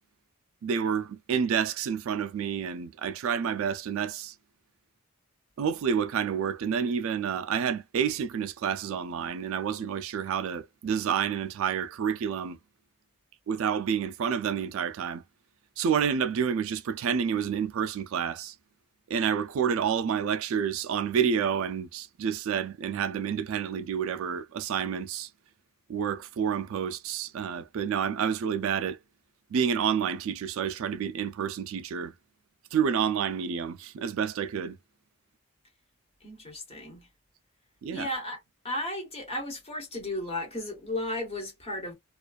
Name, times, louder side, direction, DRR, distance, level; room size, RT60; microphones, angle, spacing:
voice 1, 0.6-4.3 5.6-12.6 13.5-15.2 15.8-18.5 19.1-25.3 25.9-29.0 29.5-32.1 32.7-34.8 37.8-38.1, right 7 dB, 65° right, 0.3 m, -29 dB
voice 2, 36.2-37.1 37.9-38.4 38.6-41.9, left 1 dB, 25° left, 1.1 m, -34 dB
2.4 x 2.2 x 2.3 m
head